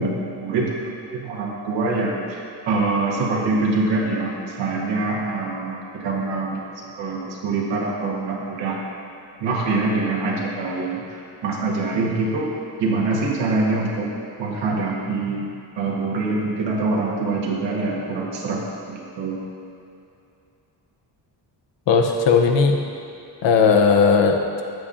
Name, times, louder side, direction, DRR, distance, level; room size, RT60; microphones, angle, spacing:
voice 1, 0.0-6.6 6.9-8.8 9.4-12.5 12.8-14.1 14.4-15.5 15.8-18.6 18.9-19.4, right 3 dB, 85° right, -3 dB, 1.2 m, -24 dB
voice 2, 21.9-22.8 23.4-24.6, left 5 dB, 80° left, 4 dB, 0.7 m, -17 dB
7.7 x 6.7 x 2.5 m, 2.7 s
wide cardioid pair, 170°, 43 cm